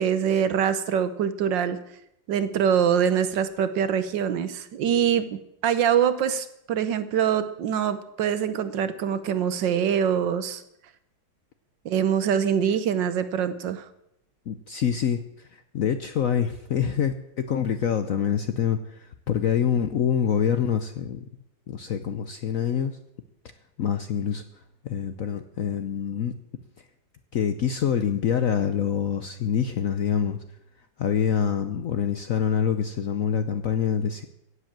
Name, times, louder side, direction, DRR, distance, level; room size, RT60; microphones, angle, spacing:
voice 1, 0.0-1.8 2.3-10.6 11.8-13.8, right 8 dB, 70° right, 12 dB, 1.5 m, -24 dB
voice 2, 14.5-21.3 21.7-23.0 23.8-24.4 24.8-26.3 27.3-30.4 31.0-34.2, left 8 dB, 60° left, 9 dB, 0.9 m, -26 dB
16.5 x 7.9 x 7.4 m, 0.80 s
omnidirectional pair, 2.2 m